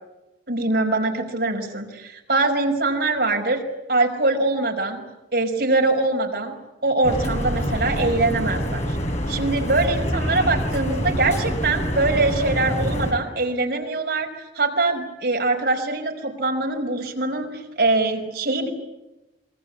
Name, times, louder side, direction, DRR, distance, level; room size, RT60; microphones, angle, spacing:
voice 1, 0.5-3.6 3.9-5.0 5.3-6.5 6.8-9.0 9.3-14.3 14.6-18.7, right 2 dB, 60° right, 2 dB, 5.3 m, -23 dB
sound 1, 7.0-13.1, equal, 40° left, 5.4 m, -26 dB
27.0 x 24.0 x 8.5 m, 1.0 s
head